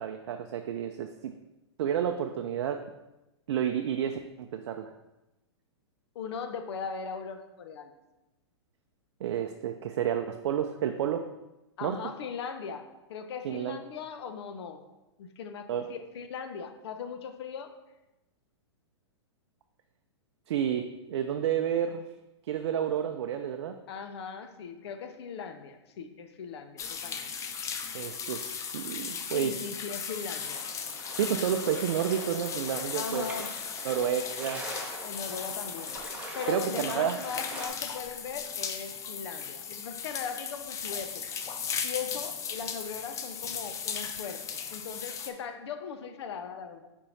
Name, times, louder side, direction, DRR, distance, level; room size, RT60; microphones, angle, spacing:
voice 1, 0.0-1.4 1.8-2.8 3.5-4.9 9.2-11.2 11.8-12.0 13.4-13.8 15.7-15.9 20.5-22.1 22.5-23.8 27.9-29.7 31.1-33.3 33.8-34.6 36.5-37.2, right 9 dB, 65° right, 5 dB, 0.5 m, -30 dB
voice 2, 6.1-7.9 11.8-14.8 15.2-17.7 23.9-27.3 29.3-30.7 32.9-33.5 35.0-36.0 36.3-41.2 41.5-46.9, left 6 dB, 65° left, 7 dB, 0.8 m, -39 dB
sound 1, 26.8-45.3, left 7 dB, 20° left, 0.5 m, -37 dB
sound 2, 30.4-37.7, right 1 dB, 10° right, 1.1 m, -43 dB
5.5 x 4.7 x 4.1 m, 1.0 s
hypercardioid pair, 120°, 15 cm